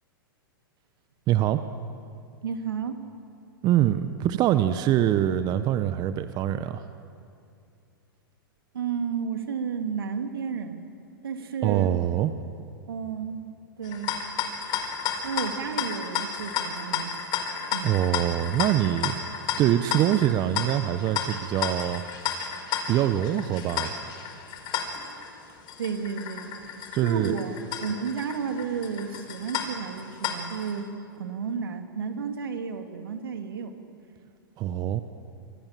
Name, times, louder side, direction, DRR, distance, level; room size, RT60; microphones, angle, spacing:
voice 1, 1.3-1.6 3.6-6.8 11.6-12.3 17.8-19.1 19.6-22.0 22.9-23.9 26.9-27.3 34.6-35.0, right 12 dB, 35° right, 10 dB, 1.1 m, -24 dB
voice 2, 2.4-3.0 8.7-10.8 11.2-11.9 12.9-13.5 13.8-14.2 15.2-17.1 17.7-18.0 25.8-26.5 27.0-33.7, right 6 dB, 75° right, 5 dB, 2.9 m, -32 dB
Rattling teapot, 13.8-30.7, left 7 dB, 35° left, 4.7 m, -32 dB
27.5 x 26.0 x 7.7 m, 2.5 s
hypercardioid pair, 105°, 12 cm